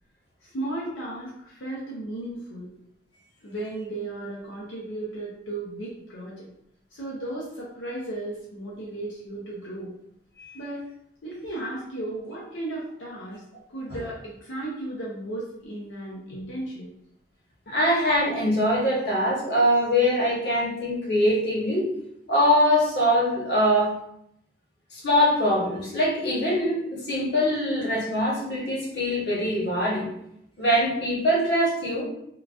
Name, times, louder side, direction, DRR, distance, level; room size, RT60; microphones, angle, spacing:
voice 1, 0.4-2.7 3.4-6.5 6.9-9.9 10.5-10.8 11.2-13.4 13.7-16.9, right 2 dB, 90° left, -6 dB, 0.7 m, -35 dB
voice 2, 17.7-21.9 22.3-23.9 24.9-30.1 30.6-32.0, equal, 60° left, -5 dB, 1.1 m, -23 dB
3.8 x 2.3 x 2.4 m, 0.75 s
head